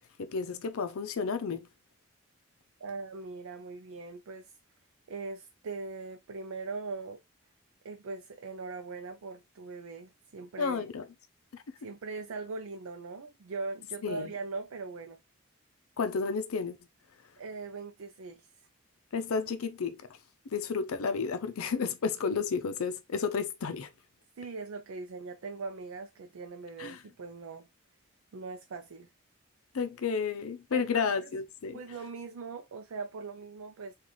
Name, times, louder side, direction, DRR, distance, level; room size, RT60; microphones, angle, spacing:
voice 1, 0.2-1.7 10.6-11.0 11.5-11.6 14.0-14.3 16.0-16.8 19.1-20.0 20.5-23.9 26.8-27.0 29.7-31.8, left 5 dB, 85° left, 0.5 m, -31 dB
voice 2, 2.8-4.6 5.1-7.2 7.8-10.8 11.8-15.2 17.4-18.5 24.4-27.7 28.3-29.1 30.7-31.3 31.7-33.9, right 4 dB, 80° right, 0.4 m, -41 dB
3.9 x 2.4 x 3.0 m
head